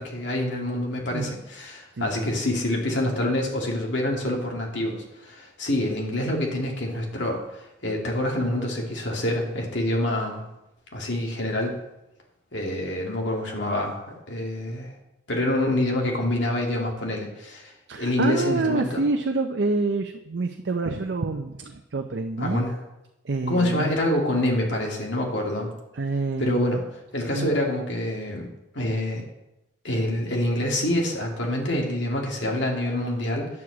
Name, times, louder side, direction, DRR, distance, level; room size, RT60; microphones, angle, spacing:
voice 1, 0.0-10.4 10.9-11.8 12.5-14.9 15.3-19.0 22.4-22.8 23.5-25.7 26.4-26.8 27.1-29.2 29.8-33.5, left 1 dB, 80° left, 0 dB, 2.2 m, -26 dB
voice 2, 17.9-22.6 23.2-23.9 25.9-26.8 27.3-27.5, right 3 dB, 75° right, 5 dB, 0.6 m, -27 dB
9.5 x 4.9 x 7.2 m, 0.91 s
head